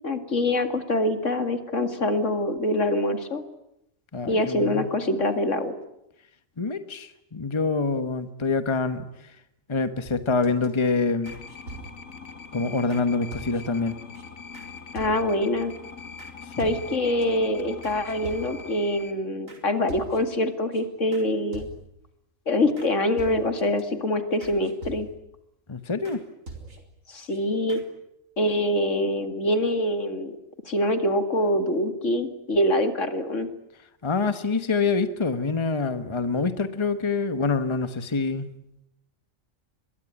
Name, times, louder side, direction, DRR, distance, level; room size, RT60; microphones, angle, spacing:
voice 1, 0.0-3.4 4.3-5.7 14.9-15.7 16.6-21.7 22.5-25.1 27.1-27.8 28.4-30.4 30.6-33.5, left 1 dB, 65° left, 8 dB, 2.6 m, -25 dB
voice 2, 4.1-4.9 6.6-9.1 9.7-11.4 12.5-14.0 16.6-16.7 25.7-26.2 34.0-38.5, left 4 dB, 25° left, 10 dB, 1.3 m, -26 dB
sound 1, 10.0-10.7 11.3-12.2 12.9-13.0 13.3-13.8 14.1-14.2 14.5-14.7 15.0-15.5 16.2-16.3 16.6-17.3 17.8-18.8 19.5-19.6 19.9-20.4 20.7-20.8 21.1-21.3 21.5-22.1 22.8-22.9 23.2-23.8 24.4-25.4 26.1-26.2 26.5-27.0 27.3-27.4 27.7-27.8, right 3 dB, 90° right, 4.5 m, -43 dB
sound 2, 11.2-19.1, left 5 dB, 90° left, 2.3 m, -42 dB
25.0 x 22.0 x 9.9 m, 0.81 s
omnidirectional pair, 1.3 m